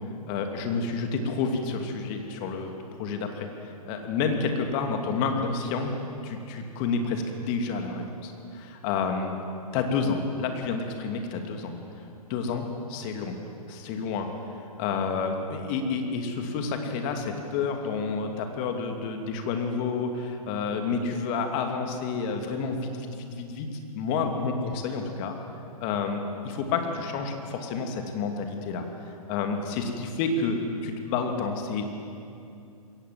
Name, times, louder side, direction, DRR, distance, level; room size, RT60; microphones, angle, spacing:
voice 1, 0.3-2.7 3.0-5.9 6.2-9.4 9.7-11.7 12.3-13.4 13.7-14.3 14.8-23.7 23.9-25.4 25.8-28.8 29.3-32.0, left 4 dB, 35° left, 4 dB, 2.6 m, -29 dB
22.0 x 17.5 x 7.6 m, 2.6 s
hypercardioid pair, 125°, 19 cm